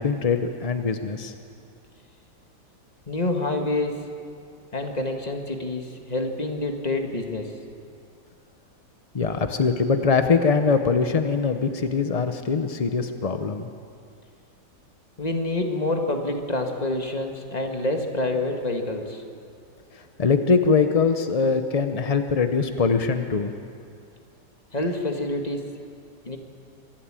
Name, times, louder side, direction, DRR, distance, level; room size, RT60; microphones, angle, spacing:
voice 1, 0.0-1.3 9.1-13.7 19.9-23.5, left 5 dB, 50° left, 8 dB, 0.4 m, -22 dB
voice 2, 3.1-4.0 4.7-7.5 15.2-19.2 24.7-25.7 26.3-26.4, left 2 dB, 25° left, 4 dB, 1.7 m, -27 dB
25.5 x 12.0 x 8.9 m, 2.4 s
omnidirectional pair, 1.9 m